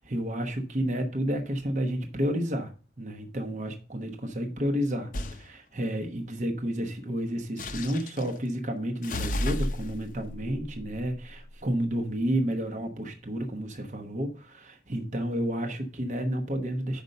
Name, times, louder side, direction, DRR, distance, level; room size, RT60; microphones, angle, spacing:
voice 1, 0.0-2.7 3.0-17.0, equal, 40° right, 4 dB, 0.9 m, -31 dB
sound 1, 5.1-5.4 7.6-8.3 9.0-11.7, left 1 dB, 45° left, 0.7 m, -33 dB
5.3 x 5.2 x 6.5 m, 0.37 s
head